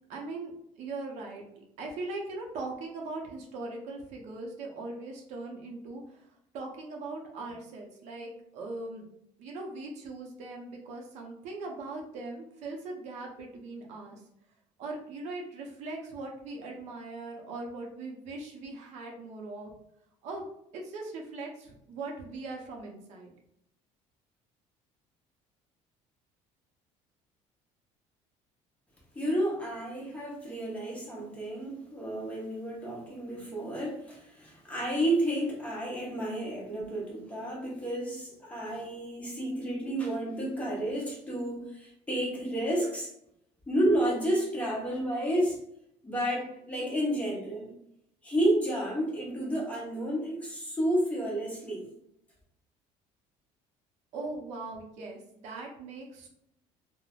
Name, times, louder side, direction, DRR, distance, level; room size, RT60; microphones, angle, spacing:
voice 1, 0.1-0.5 0.8-6.0 6.5-9.0 9.4-14.2 14.8-19.7 20.2-20.4 20.7-23.3 54.1-56.3, right 3 dB, 65° right, 0 dB, 0.6 m, -40 dB
voice 2, 29.1-43.1 43.7-45.6 46.0-47.8 48.2-51.9, right 1 dB, 10° left, -3 dB, 0.8 m, -31 dB
3.1 x 2.0 x 2.3 m, 0.75 s
cardioid pair, 140°, 13 cm